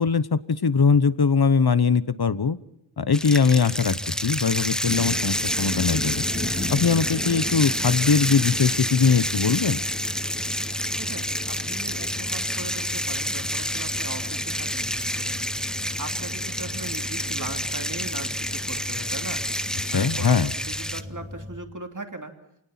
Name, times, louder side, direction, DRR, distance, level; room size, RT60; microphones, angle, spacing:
voice 1, 0.0-2.6 3.0-4.0 4.2-6.2 6.7-9.8 19.9-20.5, left 5 dB, 55° left, 17 dB, 0.9 m, -21 dB
sound 1, 3.1-21.0, equal, ahead, 0.8 m, -29 dB
sound 2, 3.7-21.6, left 1 dB, 15° right, 2.2 m, -39 dB
sound 3, 4.8-20.2, left 1 dB, 30° left, 3.4 m, -39 dB
voice 2, 11.0-15.3 16.0-19.4 19.9-22.3, right 2 dB, 40° right, 5 dB, 2.9 m, -39 dB
27.5 x 19.0 x 5.8 m, 0.80 s
wide cardioid pair, 75°, 47 cm